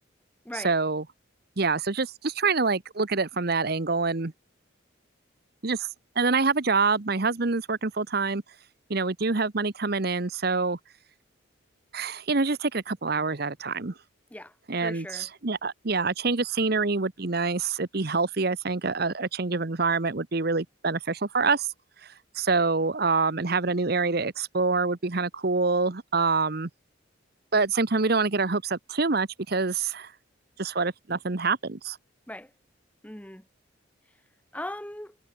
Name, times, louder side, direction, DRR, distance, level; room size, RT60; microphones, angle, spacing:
voice 1, 0.5-1.0 1.6-4.3 5.6-5.9 6.1-8.4 8.9-10.8 11.9-13.9 14.7-21.7 22.0-26.7 27.5-30.1 30.6-32.0, right 4 dB, 50° right, 1.0 m, -26 dB
voice 2, 14.8-15.3 32.3-32.5 33.0-33.4 34.5-35.2, left 1 dB, 5° left, 1.6 m, -38 dB
head